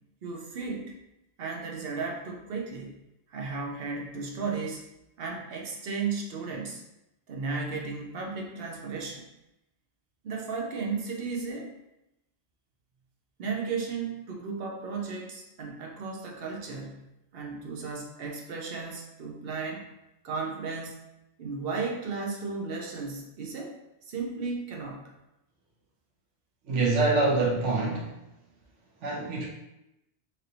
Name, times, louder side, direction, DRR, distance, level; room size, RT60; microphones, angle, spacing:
voice 1, 0.2-0.9 1.4-3.0 3.3-4.8 5.2-6.8 7.3-9.3 10.2-11.7 13.4-17.1 17.3-19.8 20.2-21.1 21.4-23.8 24.0-25.0, right 4 dB, 60° right, 0 dB, 0.8 m, -34 dB
voice 2, 26.7-28.1 29.0-29.5, right 3 dB, 90° right, -3 dB, 1.2 m, -25 dB
3.2 x 2.6 x 2.8 m, 0.90 s
omnidirectional pair, 1.2 m